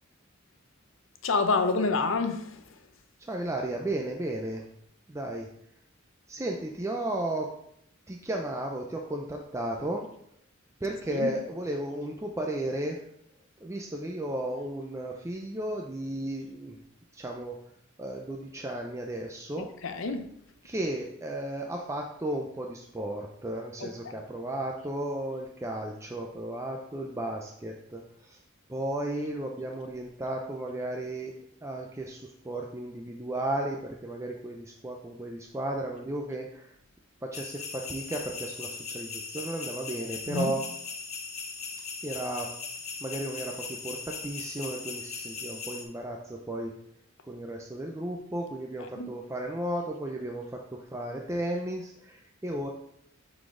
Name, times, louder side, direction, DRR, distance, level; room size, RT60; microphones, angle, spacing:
voice 1, 1.2-2.4 11.1-11.3 19.8-20.3 23.8-23.9 40.3-40.5 49.0-49.1, left 3 dB, 70° left, 0.6 m, -27 dB
voice 2, 3.2-4.6 5.1-5.5 6.3-7.5 8.1-10.1 10.8-13.1 13.6-16.8 17.1-17.6 18.0-19.7 20.6-28.4 28.7-31.3 31.6-36.8 37.2-40.6 42.0-42.5 43.0-46.7 47.2-52.7, right 1 dB, 15° right, 0.5 m, -34 dB
sound 1, 37.3-45.8, left 5 dB, 35° left, 1.0 m, -39 dB
7.9 x 4.1 x 3.8 m
head